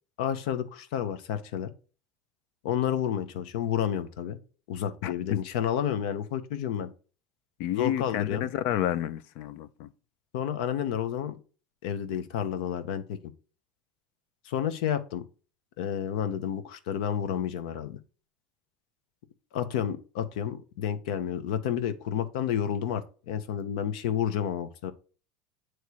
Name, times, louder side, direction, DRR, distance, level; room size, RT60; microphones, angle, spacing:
voice 1, 0.2-1.7 2.6-4.4 4.7-6.9 7.7-8.5 10.3-11.4 11.8-13.2 14.4-15.2 15.8-18.0 19.5-24.9, left 9 dB, 80° left, 0.9 m, -30 dB
voice 2, 5.0-5.4 7.6-9.9, left 11 dB, 60° left, 0.5 m, -30 dB
8.3 x 3.1 x 4.6 m
cardioid pair, 155°, 4 cm